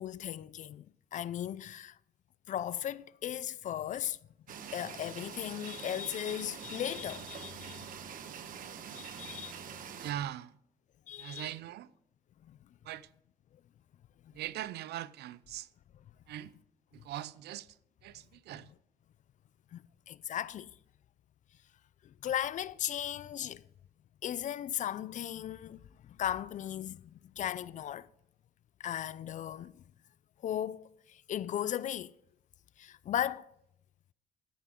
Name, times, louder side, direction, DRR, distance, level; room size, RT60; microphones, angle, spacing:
voice 1, 0.0-2.0 2.5-4.2 4.7-7.9 8.9-9.6 11.1-11.5 12.4-12.6 19.7-20.7 22.0-23.7 24.2-28.1 28.8-29.8 30.4-32.1 32.8-33.5, left 11 dB, 50° left, 0.4 m, -37 dB
sound 1, 4.5-10.1, right 8 dB, 55° right, 1.1 m, -45 dB
voice 2, 10.0-10.6 11.2-11.9 12.8-13.1 14.3-15.7 16.3-16.5 16.9-17.8 18.0-18.7, right 12 dB, 85° right, 0.6 m, -41 dB
13.5 x 10.0 x 3.7 m
cardioid pair, 135°, 17 cm